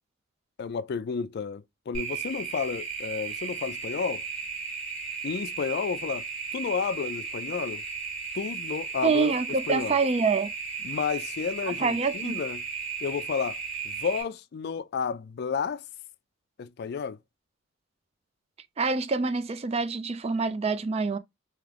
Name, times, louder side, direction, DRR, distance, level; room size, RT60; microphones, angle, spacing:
voice 1, 0.6-4.2 5.2-6.3 6.5-7.8 8.3-9.3 9.7-10.0 10.8-12.6 13.0-13.6 13.8-15.8 16.6-17.2, left 6 dB, 55° left, 0.3 m, -31 dB
sound 1, 1.9-14.2, right 5 dB, 5° left, 1.8 m, -35 dB
voice 2, 9.0-10.5 11.7-12.4 18.8-21.2, right 4 dB, 30° right, 0.4 m, -26 dB
3.6 x 2.9 x 3.3 m
head